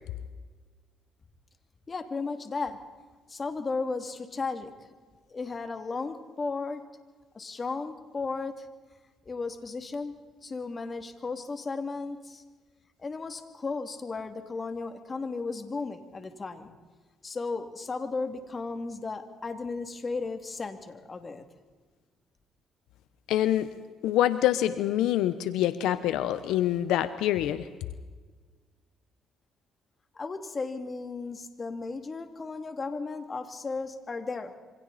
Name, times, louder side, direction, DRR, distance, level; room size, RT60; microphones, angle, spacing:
voice 1, 1.9-2.8 3.3-4.7 5.3-6.9 7.3-8.7 9.3-12.4 13.0-16.7 17.2-21.4 30.1-34.6, left 4 dB, 30° left, 7 dB, 2.6 m, -35 dB
voice 2, 23.3-23.7 24.0-27.6, left 12 dB, 85° left, 12 dB, 1.0 m, -25 dB
27.5 x 25.0 x 4.2 m, 1.4 s
cardioid pair, 85°, 0 cm